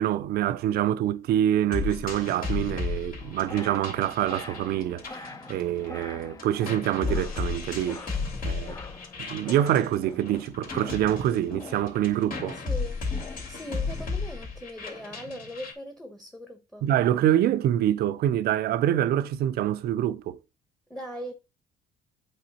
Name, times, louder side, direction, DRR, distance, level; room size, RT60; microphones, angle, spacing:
voice 1, 0.0-8.0 8.4-8.8 9.2-12.6 16.8-20.4, right 11 dB, 65° right, 0.6 m, -26 dB
sound 1, 1.7-6.1 6.4-15.7, left 4 dB, 55° left, 2.8 m, -34 dB
sound 2, 3.2-14.1, left 3 dB, 20° left, 0.6 m, -44 dB
voice 2, 12.5-13.0 13.5-16.9 20.9-21.3, equal, 5° left, 1.1 m, -40 dB
8.4 x 3.8 x 4.2 m
cardioid pair, 110°, 17 cm